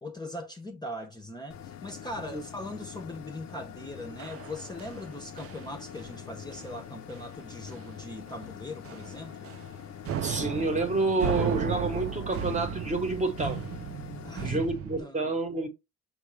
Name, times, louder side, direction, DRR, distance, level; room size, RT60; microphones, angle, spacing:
voice 1, 0.0-9.5 14.2-14.6 15.0-15.3, left 1 dB, 15° left, 0.6 m, -40 dB
sound 1, 1.5-14.5, left 9 dB, 60° left, 0.6 m, -44 dB
sound 2, 4.2-5.1 5.4-5.7 5.9-6.2 6.5-6.7 7.1-7.2 7.7-8.0 8.3-8.4 8.8-9.7 10.0-15.0, right 9 dB, 50° right, 0.5 m, -35 dB
voice 2, 10.2-13.6 14.4-15.7, right 2 dB, 25° right, 0.9 m, -29 dB
5.7 x 2.3 x 3.1 m
cardioid pair, 90°, 30 cm